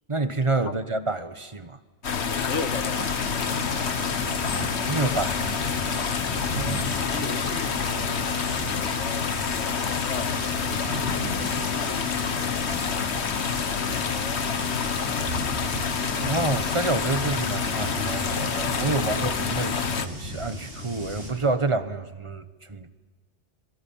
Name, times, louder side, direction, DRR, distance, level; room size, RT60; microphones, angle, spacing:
voice 1, 0.1-1.8 4.9-6.0 16.2-22.9, right 3 dB, 25° right, 1.2 m, -28 dB
sound 1, 2.0-20.1, left 6 dB, 65° left, 1.4 m, -28 dB
voice 2, 2.2-4.6 6.5-8.3 8.7-10.9 11.3-12.8 13.3-15.3, left 4 dB, 85° left, 1.8 m, -39 dB
sound 2, 2.9-21.3, right 1 dB, 65° right, 8.4 m, -36 dB
26.5 x 23.5 x 8.7 m
omnidirectional pair, 1.2 m